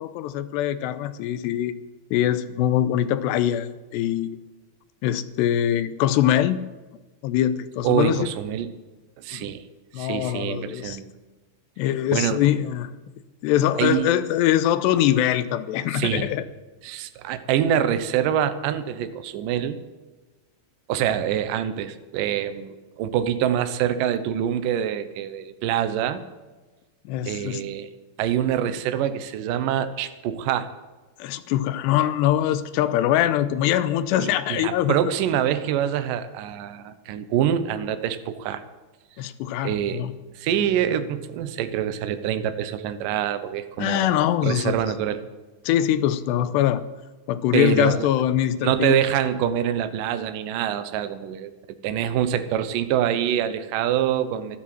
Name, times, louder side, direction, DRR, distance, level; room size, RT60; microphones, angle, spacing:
voice 1, 0.0-1.7 2.1-4.4 5.0-6.6 7.2-8.3 9.3-9.6 9.9-11.0 11.8-12.9 13.4-16.5 27.1-27.6 31.2-35.1 39.2-40.1 43.8-44.7 45.6-46.8 47.3-49.0, left 11 dB, 85° left, 13 dB, 2.9 m, -23 dB
voice 2, 7.8-8.7 9.2-9.6 10.0-11.1 12.1-12.4 13.8-14.1 15.9-16.3 16.8-19.8 20.9-26.2 27.3-27.9 28.2-30.7 34.2-38.6 39.6-40.0 40.4-44.2 44.4-45.2 47.5-48.1 48.6-51.5 51.8-54.6, right 10 dB, 70° right, 10 dB, 2.1 m, -25 dB
13.5 x 12.5 x 7.5 m, 1.2 s
omnidirectional pair, 4.9 m